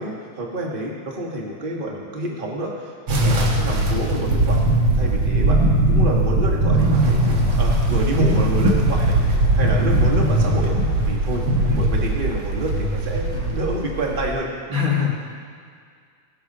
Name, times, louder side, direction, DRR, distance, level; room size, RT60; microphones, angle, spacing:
voice 1, 0.0-4.6 4.9-10.8 11.1-14.5, right 1 dB, 25° right, -2 dB, 1.7 m, -28 dB
sound 1, 3.1-14.3, right 1 dB, 70° right, 2.2 m, -19 dB
voice 2, 14.7-15.2, left 6 dB, 90° right, -3 dB, 3.0 m, -24 dB
18.0 x 7.8 x 5.5 m, 2.1 s
omnidirectional pair, 2.3 m